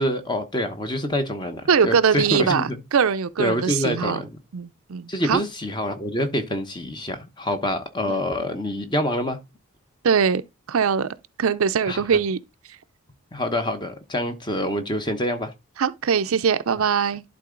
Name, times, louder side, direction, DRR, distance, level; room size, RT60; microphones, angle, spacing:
voice 1, 0.0-2.8 3.4-4.3 5.1-9.4 11.9-12.0 13.3-15.5, left 1 dB, 20° left, 0.9 m, -26 dB
voice 2, 1.7-4.2 4.5-5.4 8.1-8.2 10.0-10.4 10.7-12.4 15.8-17.2, right 6 dB, 75° right, 0.5 m, -22 dB
11.5 x 3.8 x 3.8 m
head